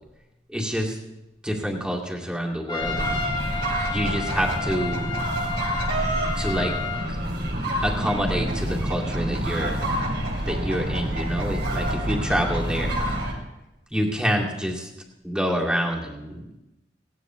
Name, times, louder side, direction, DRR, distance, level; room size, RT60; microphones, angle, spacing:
voice 1, 0.5-1.0 1.4-3.2 3.9-5.1 6.3-6.7 7.8-9.8 10.5-13.3 13.9-14.9 15.2-16.5, equal, 5° right, -2 dB, 2.3 m, -27 dB
Trumpet, 2.7-7.1, left 4 dB, 25° left, 1.4 m, -32 dB
sound 1, 2.8-13.3, right 1 dB, 65° right, 3.0 m, -27 dB
18.5 x 17.5 x 3.1 m, 0.96 s
head